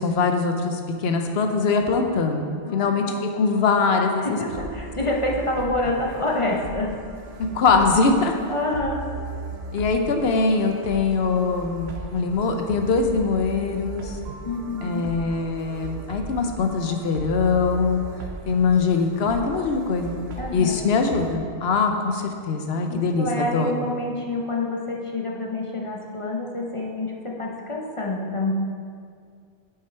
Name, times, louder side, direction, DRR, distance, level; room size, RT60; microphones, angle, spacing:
voice 1, 0.0-3.0 3.3-4.4 7.4-8.3 9.7-14.1 14.8-18.0 18.5-20.1 20.5-23.7, left 4 dB, 65° left, 5 dB, 1.0 m, -22 dB
voice 2, 2.7-3.2 4.2-7.0 8.5-9.0 14.4-15.1 20.4-20.9 22.9-28.5, left 2 dB, 35° left, -1 dB, 0.7 m, -27 dB
sound 1, 4.5-21.4, right 3 dB, 65° right, 1.0 m, -37 dB
7.1 x 6.6 x 4.5 m, 2.2 s
omnidirectional pair, 1.2 m